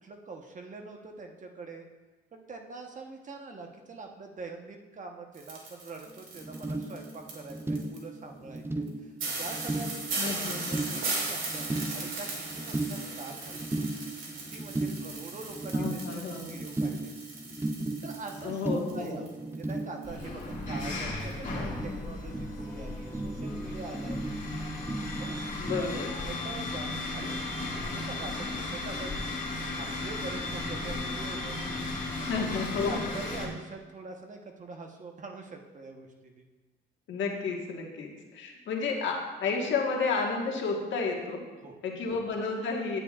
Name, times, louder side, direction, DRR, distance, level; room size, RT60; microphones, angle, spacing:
voice 1, 0.0-1.9 2.3-9.1 9.4-10.2 10.5-13.7 14.2-17.1 18.0-24.2 25.2-25.5 25.7-27.4 27.8-29.1 29.6-31.6 32.2-32.4 32.8-36.4 41.6-41.8, right 3 dB, 40° right, 3 dB, 1.1 m, -44 dB
sound 1, 5.3-8.0 8.6-8.7 8.9-9.0 9.2-19.3 19.5-20.5 20.8-20.9 21.3-21.5, right 3 dB, 80° right, 2.3 m, -38 dB
sound 2, 6.1-6.2 6.4-25.9, right 2 dB, 10° right, 0.5 m, -36 dB
voice 2, 10.2-10.8 15.7-16.5 18.4-19.2 25.6-26.1 32.3-33.0 37.1-41.4 41.8-43.0, left 4 dB, 70° left, 0 dB, 1.6 m, -31 dB
sound 3, 20.0-33.5, left 2 dB, 40° left, 2.1 m, -35 dB
9.9 x 9.2 x 2.5 m, 1.2 s
cardioid pair, 90°, 20 cm